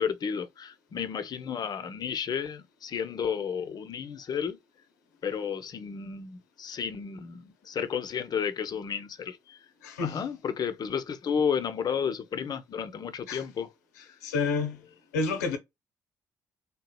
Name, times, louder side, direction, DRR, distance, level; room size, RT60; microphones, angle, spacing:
voice 1, 0.0-4.6 5.2-9.6 10.0-13.7, left 7 dB, 50° left, 0.7 m, -32 dB
voice 2, 9.8-10.2 13.3-13.4 14.2-14.8 15.1-15.6, left 4 dB, 90° left, 0.7 m, -29 dB
3.6 x 2.8 x 2.2 m
hypercardioid pair, 50°, 9 cm